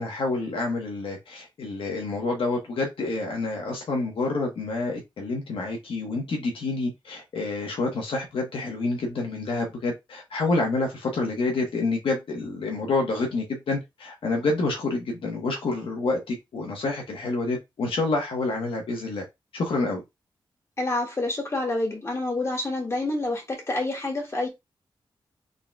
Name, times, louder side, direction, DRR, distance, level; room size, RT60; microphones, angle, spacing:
voice 1, 0.0-19.2 19.5-20.0, left 3 dB, 90° left, 1.2 m, -28 dB
voice 2, 20.8-24.5, left 2 dB, 30° left, 2.0 m, -28 dB
3.9 x 3.8 x 2.3 m
wide cardioid pair, 100°, 9 cm